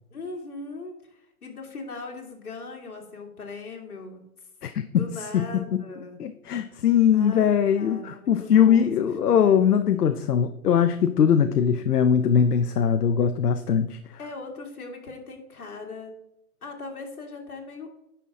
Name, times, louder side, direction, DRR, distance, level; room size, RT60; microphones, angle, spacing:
voice 1, 0.1-4.3 4.9-6.2 7.1-8.9 9.2-9.6 11.7-12.6 14.2-16.1 16.6-17.9, left 3 dB, 70° left, 1 dB, 2.6 m, -39 dB
voice 2, 4.6-5.8 6.2-14.0, left 8 dB, 85° left, 8 dB, 0.8 m, -21 dB
10.0 x 5.8 x 3.7 m, 0.85 s
hypercardioid pair, 170°, 45 cm